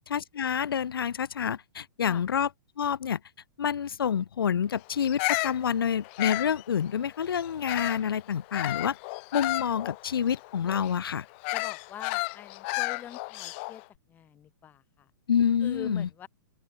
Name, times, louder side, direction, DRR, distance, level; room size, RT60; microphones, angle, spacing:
voice 1, 0.0-2.5 2.8-3.2 3.6-9.0 9.3-11.2 15.3-16.1, left 8 dB, 85° left, 3.4 m, -28 dB
Bird vocalization bird call bird song, 5.0-8.1 8.5-13.8, left 30 dB, 30° left, 1.8 m, -33 dB
voice 2, 11.5-13.8 14.1-14.8 15.6-16.3, left 10 dB, 15° left, 5.0 m, -43 dB
open air
hypercardioid pair, 165°, 12 cm